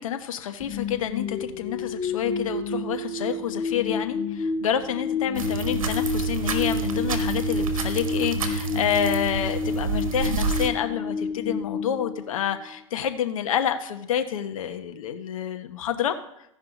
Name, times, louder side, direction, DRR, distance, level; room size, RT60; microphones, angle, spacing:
voice 1, 0.0-16.2, left 9 dB, 80° left, 8 dB, 1.0 m, -28 dB
sound 1, 0.6-12.8, left 4 dB, 15° left, 1.7 m, -30 dB
sound 2, 5.3-10.7, right 5 dB, 90° right, 1.2 m, -29 dB
15.0 x 5.5 x 4.0 m, 0.78 s
hypercardioid pair, 120°, 17 cm